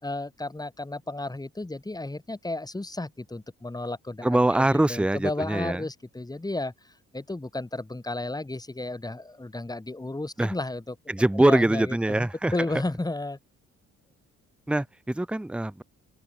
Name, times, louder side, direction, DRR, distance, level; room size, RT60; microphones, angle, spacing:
voice 1, 0.0-11.0 11.3-13.4, left 2 dB, 15° left, 4.0 m, -33 dB
voice 2, 4.2-5.8 10.4-10.5 11.1-12.5 14.7-15.8, right 1 dB, 5° right, 0.7 m, -23 dB
open air
cardioid pair, 85°, 29 cm